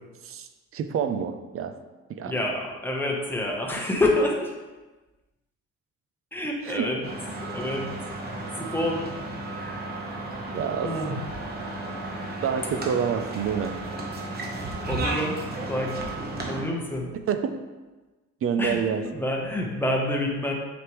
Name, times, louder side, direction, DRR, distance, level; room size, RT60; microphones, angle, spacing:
voice 1, 0.7-1.7 2.1-2.3 6.7-6.9 10.5-10.9 12.4-13.8 17.3-17.6 18.4-19.0, right 7 dB, 50° right, 8 dB, 0.5 m, -27 dB
voice 2, 2.2-4.5 6.3-7.0 7.4-7.9 8.6-9.1 9.5-9.8 10.8-11.2 14.9-15.4 15.7-16.0 16.5-17.1 18.6-20.5, left 1 dB, 5° left, -1 dB, 1.0 m, -27 dB
sound 1, 7.0-16.6, right 2 dB, 30° right, 1.0 m, -33 dB
6.4 x 5.2 x 3.1 m, 1.2 s
cardioid pair, 135°, 30 cm